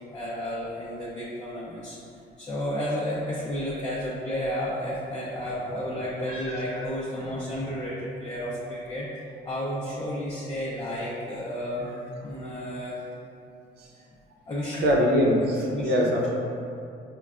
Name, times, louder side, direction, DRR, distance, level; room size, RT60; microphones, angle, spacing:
voice 1, 0.0-2.0 2.4-9.1 9.5-11.9 12.2-13.0 14.5-14.8 15.7-16.1, equal, 25° left, -7 dB, 0.6 m, -32 dB
voice 2, 14.8-16.3, equal, 75° right, -2 dB, 0.7 m, -22 dB
5.2 x 2.2 x 2.4 m, 2.6 s
cardioid pair, 110°, 17 cm